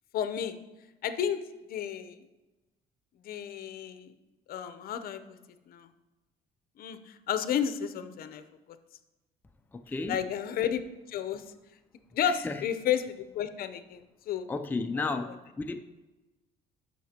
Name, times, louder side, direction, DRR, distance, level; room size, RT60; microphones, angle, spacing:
voice 1, 0.1-0.6 1.0-1.4 1.7-2.2 3.2-4.1 4.5-5.4 5.7-5.9 6.8-8.4 10.1-10.8 11.1-11.4 12.1-14.5, left 9 dB, 60° left, 11 dB, 0.7 m, -32 dB
voice 2, 9.7-10.2 12.2-12.6 14.5-15.8, left 3 dB, 10° left, 7 dB, 0.4 m, -33 dB
13.5 x 5.9 x 2.9 m, 1.1 s
cardioid pair, 110°, 17 cm